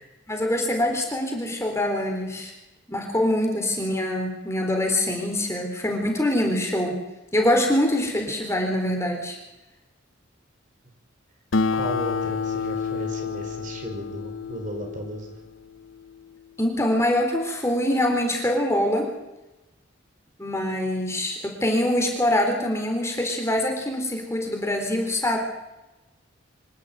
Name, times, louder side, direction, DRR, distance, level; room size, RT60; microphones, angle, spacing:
voice 1, 0.3-2.5 2.9-7.0 7.3-9.4 16.6-19.1 20.4-25.4, left 1 dB, 15° left, 2 dB, 4.1 m, -24 dB
Acoustic guitar, 11.5-16.4, left 5 dB, 75° left, 0.8 m, -29 dB
voice 2, 11.7-15.4, equal, 40° right, 3 dB, 4.7 m, -34 dB
26.0 x 12.0 x 9.4 m, 0.99 s
head